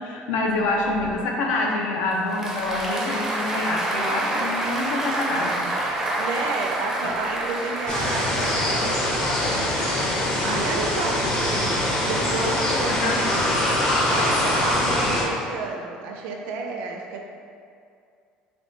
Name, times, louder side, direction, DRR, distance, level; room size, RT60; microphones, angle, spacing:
voice 1, 0.0-5.7 7.0-7.1 10.4-10.7 12.9-13.2, left 2 dB, 80° left, 0 dB, 0.5 m, -26 dB
Applause, 2.1-9.2, right 1 dB, 15° right, 0.4 m, -28 dB
voice 2, 6.2-13.5 13.9-17.2, right 3 dB, 90° right, 2 dB, 0.4 m, -31 dB
sound 1, 7.9-15.2, left 1 dB, 30° left, 0.7 m, -23 dB
3.6 x 2.2 x 3.6 m, 2.4 s
cardioid pair, 155°, 3 cm